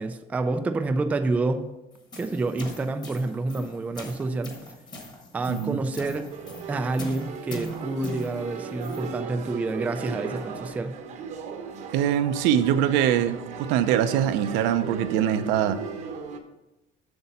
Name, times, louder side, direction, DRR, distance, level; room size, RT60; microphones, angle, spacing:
voice 1, 0.0-1.6 2.2-4.5 5.3-6.2 6.7-10.9, right 3 dB, 10° right, 0.3 m, -28 dB
sound 1, 1.9-9.1, equal, 20° left, 1.4 m, -41 dB
voice 2, 5.5-5.8 11.9-15.8, right 10 dB, 80° right, 0.6 m, -23 dB
sound 2, 6.3-16.4, right 6 dB, 40° right, 0.8 m, -37 dB
8.0 x 6.9 x 4.2 m
cardioid pair, 175°, 18 cm